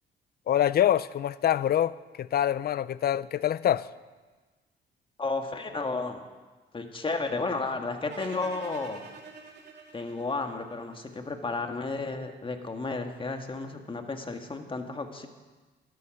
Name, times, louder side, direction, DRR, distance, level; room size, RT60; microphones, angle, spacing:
voice 1, 0.5-3.9, left 11 dB, 50° left, 18 dB, 0.5 m, -25 dB
voice 2, 5.2-6.2 6.7-9.1 9.9-15.3, left 3 dB, 25° left, 5 dB, 1.7 m, -33 dB
sound 1, 8.1-11.2, right 4 dB, 60° right, 2.7 m, -46 dB
12.5 x 12.5 x 6.4 m, 1.3 s
cardioid pair, 90°, 20 cm